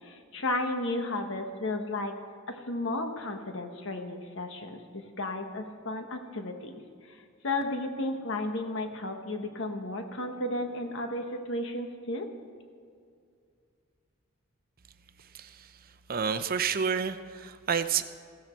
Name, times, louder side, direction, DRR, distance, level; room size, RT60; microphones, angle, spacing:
voice 1, 0.0-2.1 2.5-4.8 5.2-6.8 7.4-12.3, left 2 dB, 65° left, 5 dB, 1.3 m, -33 dB
voice 2, 15.3-15.7 16.1-18.0, right 6 dB, 45° right, 10 dB, 0.7 m, -29 dB
16.0 x 15.5 x 4.5 m, 2.2 s
head